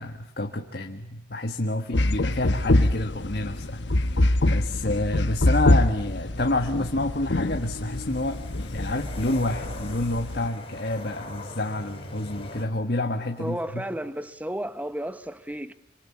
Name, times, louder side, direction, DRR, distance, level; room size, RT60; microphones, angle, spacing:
voice 1, 0.0-8.4 8.7-13.9, left 2 dB, 55° left, 1.6 m, -29 dB
sound 1, 1.9-10.5, left 1 dB, 75° left, 1.1 m, -25 dB
sound 2, 7.3-12.7, left 2 dB, 30° left, 6.5 m, -42 dB
voice 2, 13.4-15.7, equal, 10° right, 1.0 m, -33 dB
27.0 x 25.0 x 8.6 m
head